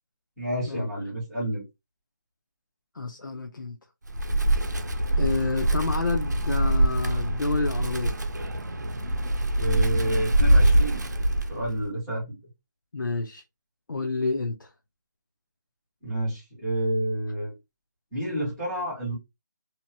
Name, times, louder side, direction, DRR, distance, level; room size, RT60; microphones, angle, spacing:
voice 1, 0.4-1.6 9.6-11.0 11.5-12.4 16.0-17.5 18.1-19.1, right 1 dB, ahead, 0.4 m, -29 dB
voice 2, 2.9-3.8 5.2-8.1 12.9-13.4 13.9-14.7, left 3 dB, 85° left, 0.6 m, -29 dB
Wind, 4.1-11.8, right 1 dB, 65° right, 0.6 m, -24 dB
2.8 x 2.1 x 2.7 m
figure-of-eight pair, 175°, 10 cm